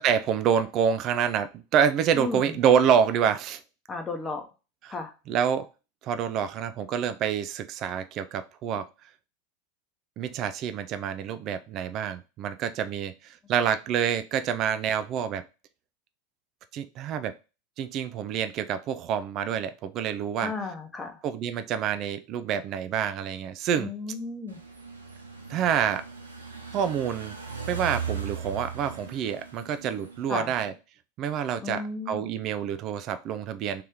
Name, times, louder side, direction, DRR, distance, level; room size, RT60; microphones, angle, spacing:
voice 1, 0.0-3.6 4.8-4.9 5.3-5.7 6.0-8.9 10.2-15.4 16.7-17.3 17.8-20.5 21.2-23.9 25.5-26.0 26.7-27.4 27.7-30.7 31.2-33.8, right 8 dB, 40° right, 0.3 m, -27 dB
voice 2, 2.1-2.5 3.9-4.4 4.9-5.1 20.4-21.2 23.8-24.6 30.3-30.6 31.6-32.2, left 4 dB, 20° left, 0.8 m, -34 dB
sound 1, 24.5-30.7, right 6 dB, 85° right, 0.6 m, -38 dB
3.2 x 2.9 x 3.5 m
figure-of-eight pair, 85°, 0 cm